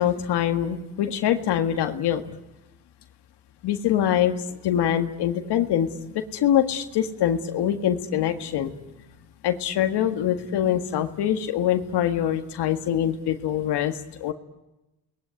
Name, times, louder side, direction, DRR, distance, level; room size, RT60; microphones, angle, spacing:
voice 1, 0.0-2.3 3.6-8.7 9.4-14.3, left 10 dB, 90° left, 6 dB, 1.9 m, -24 dB
28.5 x 20.5 x 9.7 m, 0.97 s
cardioid pair, 70°, 40 cm